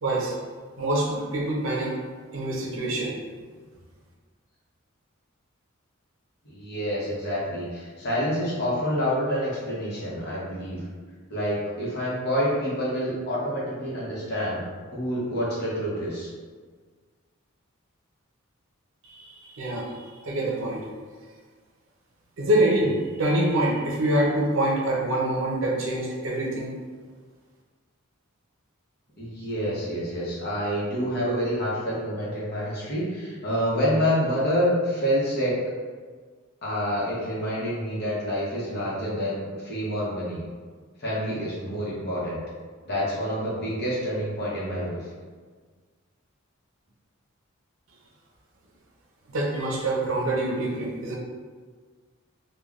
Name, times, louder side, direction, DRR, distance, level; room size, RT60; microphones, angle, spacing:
voice 1, 0.0-0.4 0.8-2.0 2.3-3.2 19.1-20.9 22.4-26.7 49.3-51.2, right 1 dB, 65° right, -2 dB, 0.6 m, -25 dB
voice 2, 6.4-10.8 11.3-14.6 14.9-16.3 29.2-35.5 36.6-40.4 41.0-42.4 42.9-45.0, equal, 50° left, -7 dB, 0.9 m, -27 dB
3.3 x 2.2 x 2.4 m, 1.5 s
head